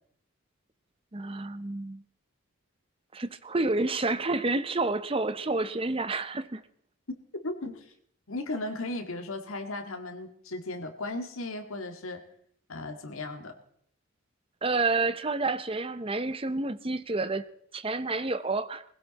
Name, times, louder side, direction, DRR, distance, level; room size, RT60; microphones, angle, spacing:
voice 1, 1.1-2.0 3.1-6.6 14.6-18.8, right 3 dB, 25° right, 0.7 m, -29 dB
voice 2, 7.4-7.9 8.3-12.2 12.7-13.5, left 2 dB, 80° left, 1.9 m, -36 dB
19.5 x 16.0 x 4.1 m
head